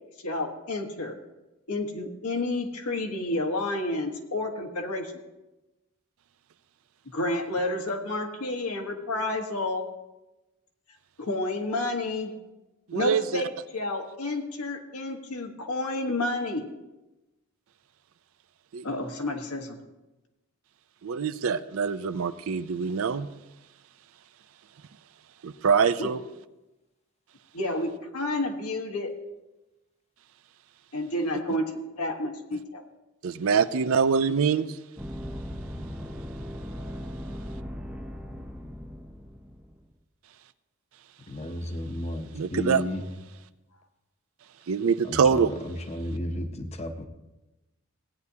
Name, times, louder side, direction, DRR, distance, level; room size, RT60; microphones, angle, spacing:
voice 1, 0.2-1.1 1.7-5.1 7.1-9.8 11.2-12.3 12.9-16.6 18.8-19.8 26.0-26.1 27.5-29.1 30.9-32.8, left 2 dB, 85° left, 3 dB, 1.4 m, -30 dB
voice 2, 12.9-13.4 18.7-18.8 21.0-23.3 25.4-26.2 33.2-34.7 42.3-42.8 44.7-45.5, right 6 dB, 65° right, 13 dB, 0.4 m, -24 dB
sound 1, 35.0-39.9, equal, 5° right, 0.5 m, -38 dB
voice 3, 41.3-43.1 45.0-47.1, left 1 dB, 30° left, 6 dB, 0.7 m, -33 dB
16.5 x 9.4 x 2.8 m, 1.0 s
head